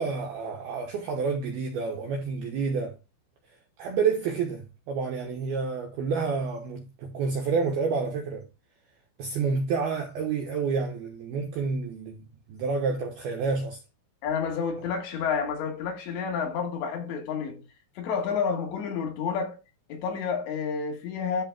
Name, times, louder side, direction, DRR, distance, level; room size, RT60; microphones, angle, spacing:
voice 1, 0.0-3.0 3.8-8.4 9.2-13.8, right 5 dB, 80° right, 2.2 m, -29 dB
voice 2, 14.2-17.6 18.0-19.6 19.9-21.4, left 6 dB, 70° left, 3.5 m, -30 dB
13.0 x 5.9 x 2.2 m
omnidirectional pair, 5.9 m